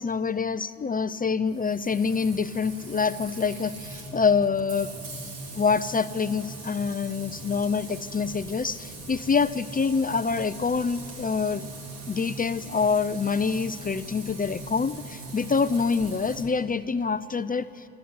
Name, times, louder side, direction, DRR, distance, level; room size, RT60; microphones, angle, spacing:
voice 1, 0.0-4.9 5.5-11.7 12.1-17.7, left 5 dB, 25° left, 13 dB, 0.6 m, -26 dB
Frying (food), 1.5-16.4, right 2 dB, 70° right, 3.8 m, -41 dB
25.0 x 13.5 x 9.6 m, 2.7 s
supercardioid pair, 75°, 36 cm